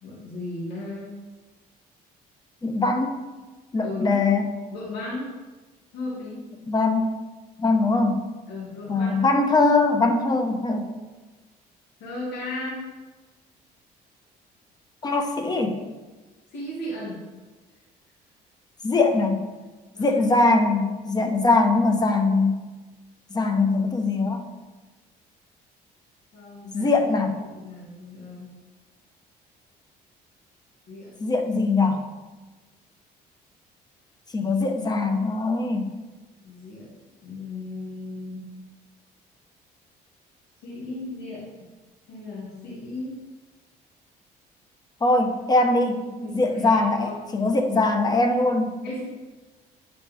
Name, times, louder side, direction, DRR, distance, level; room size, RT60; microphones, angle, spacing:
voice 1, 0.0-1.1 3.8-4.2 4.7-5.3 5.9-6.5 8.5-9.2 12.0-12.8 16.5-17.2 18.9-19.0 19.9-20.3 22.0-22.1 26.3-26.9 27.5-28.5 30.9-31.1 36.4-36.9 37.2-38.5 40.6-41.5 42.1-43.2 45.8-47.2 48.8-49.0, left 2 dB, 80° left, -6 dB, 2.3 m, -36 dB
voice 2, 2.6-3.2 3.7-4.6 6.7-7.1 7.6-8.2 8.9-10.9 15.0-15.8 18.8-19.4 20.0-22.6 23.3-24.4 26.7-27.4 31.2-32.0 34.3-35.9 45.0-48.7, left 3 dB, 25° left, 4 dB, 0.9 m, -22 dB
9.2 x 5.1 x 3.6 m, 1.3 s
cardioid pair, 110°, 17 cm